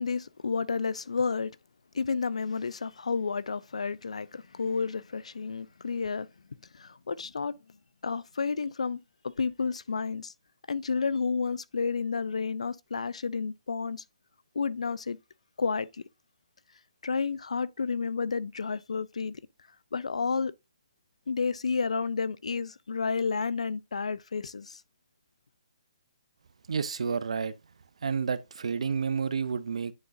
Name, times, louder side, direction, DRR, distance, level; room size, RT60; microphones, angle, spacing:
voice 1, 0.0-1.5 1.9-6.3 6.7-7.6 8.0-9.0 9.2-10.3 10.7-14.0 14.5-15.2 15.6-16.0 17.0-19.4 19.9-20.5 21.3-24.8, left 5 dB, 80° left, 0.4 m, -31 dB
voice 2, 26.7-27.5 28.0-29.9, right 6 dB, 70° right, 0.5 m, -30 dB
9.5 x 3.8 x 2.5 m
hypercardioid pair, 145°, 3 cm